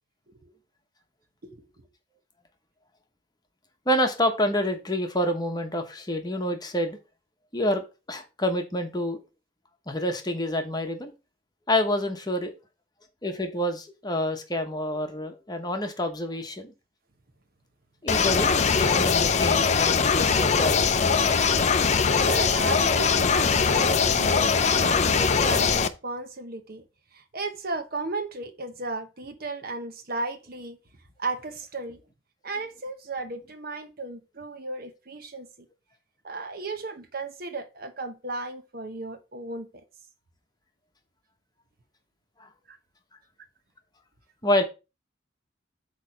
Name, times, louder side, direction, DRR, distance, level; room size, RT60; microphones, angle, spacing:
voice 1, 1.4-1.8 22.2-26.8 27.1-30.8 31.2-32.0 32.4-35.5 36.2-39.8 42.7-42.8, right 3 dB, 50° right, 1.0 m, -35 dB
voice 2, 3.9-7.0 7.5-9.2 9.9-11.1 11.7-12.5 13.2-16.7 18.0-20.9 42.4-42.5 44.4-44.6, left 1 dB, 20° left, 1.1 m, -27 dB
sound 1, 18.1-25.9, left 5 dB, 35° left, 0.5 m, -21 dB
8.2 x 3.2 x 5.7 m
head